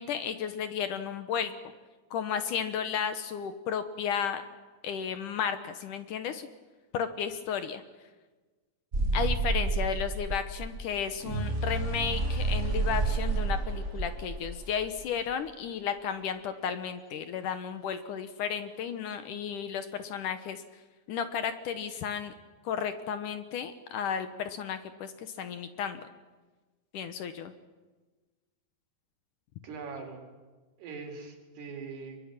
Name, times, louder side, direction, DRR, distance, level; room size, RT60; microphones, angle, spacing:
voice 1, 0.0-1.5 2.1-4.4 4.8-6.5 6.9-7.8 9.1-20.6 21.1-22.3 22.6-26.0 26.9-27.5, left 7 dB, 65° left, 10 dB, 2.2 m, -33 dB
sound 1, 8.9-15.0, right 3 dB, 75° right, 0.6 m, -30 dB
voice 2, 29.6-30.2 30.8-32.2, right 4 dB, 90° right, 3 dB, 6.0 m, -41 dB
24.5 x 22.5 x 9.1 m, 1.3 s
omnidirectional pair, 4.5 m